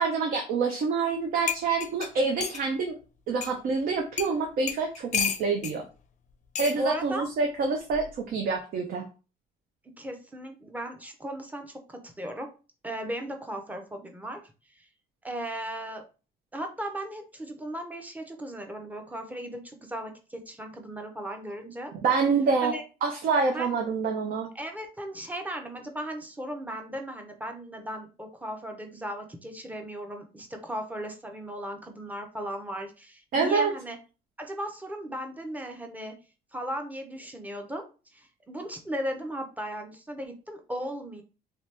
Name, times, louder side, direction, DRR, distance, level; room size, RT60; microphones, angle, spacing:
voice 1, 0.0-2.9 3.3-5.8 6.6-9.0 22.0-22.7 23.0-24.5 33.3-33.7, right 4 dB, 60° right, 3 dB, 0.7 m, -26 dB
sound 1, 1.1-1.2 1.5-2.6 3.4-3.5 4.2-4.3 4.7-5.8 6.5-6.8 7.9-8.2, left 8 dB, 45° left, 0.5 m, -31 dB
voice 2, 6.6-7.2 10.0-12.5 12.8-14.4 15.2-16.0 16.5-21.9 22.6-22.8 23.5-23.7 24.5-34.0 34.4-36.2 36.5-37.9 38.1-41.2, right 1 dB, 10° right, 4 dB, 0.7 m, -36 dB
2.9 x 2.8 x 3.3 m, 0.34 s
cardioid pair, 110°, 17 cm